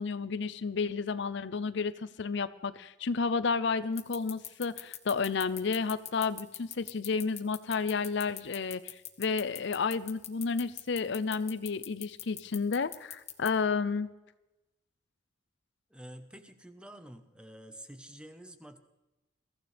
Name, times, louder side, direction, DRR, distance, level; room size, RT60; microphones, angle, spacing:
voice 1, 0.0-14.1, left 5 dB, 65° left, 14 dB, 0.6 m, -31 dB
sound 1, 4.0-13.5, left 11 dB, 35° left, 1.1 m, -40 dB
voice 2, 15.9-18.8, right 1 dB, 5° right, 8 dB, 1.1 m, -49 dB
22.5 x 15.0 x 3.4 m, 1.0 s
head